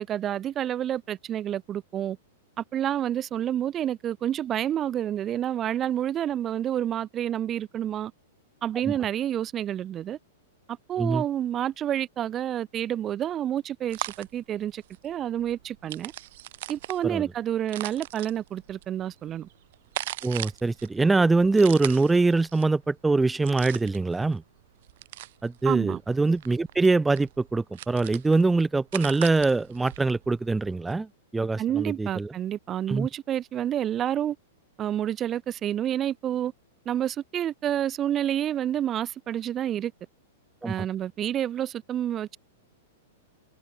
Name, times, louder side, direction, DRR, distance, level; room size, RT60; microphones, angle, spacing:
voice 1, 0.0-2.2 2.6-8.1 8.6-10.2 10.9-16.1 16.7-19.5 25.6-26.0 31.6-34.4 34.8-36.5 36.9-39.9 40.6-42.4, right 10 dB, 25° right, 2.4 m, -29 dB
sound 1, 13.9-30.9, right 16 dB, 55° right, 5.3 m, -40 dB
voice 2, 20.2-24.4 25.4-32.3 32.9-33.1 40.6-40.9, right 3 dB, 10° right, 5.1 m, -23 dB
figure-of-eight pair, 100°, 0 cm